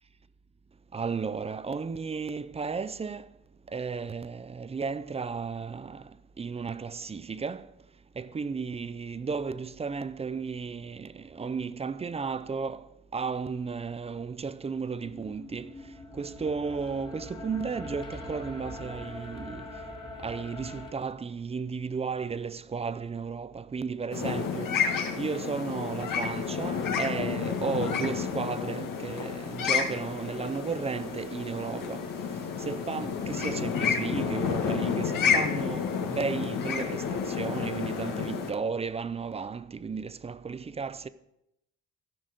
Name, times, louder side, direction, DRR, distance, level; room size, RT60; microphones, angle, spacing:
voice 1, 0.9-3.2 3.7-6.0 6.4-7.7 8.2-12.8 13.1-15.7 16.2-19.6 20.2-24.8 25.2-32.0 32.6-41.1, right 5 dB, 20° right, 0.4 m, -34 dB
sound 1, 15.0-20.9, left 1 dB, 15° left, 1.9 m, -42 dB
sound 2, 24.1-38.5, left 6 dB, 70° left, 1.8 m, -30 dB
14.5 x 6.3 x 5.0 m
cardioid pair, 130°, 34 cm